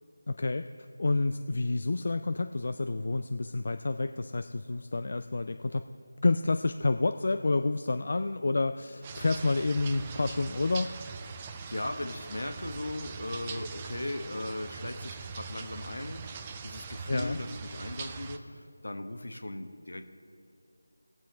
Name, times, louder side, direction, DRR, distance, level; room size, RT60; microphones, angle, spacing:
voice 1, 0.3-0.7 1.0-5.8 6.2-10.9 17.1-17.4, left 3 dB, 55° left, 9 dB, 0.3 m, -29 dB
sound 1, 9.0-18.4, right 5 dB, 20° right, 0.5 m, -42 dB
voice 2, 11.3-16.3 16.6-20.1, left 1 dB, 75° left, 7 dB, 1.1 m, -38 dB
20.0 x 7.5 x 3.4 m, 2.6 s
figure-of-eight pair, 165°, 0 cm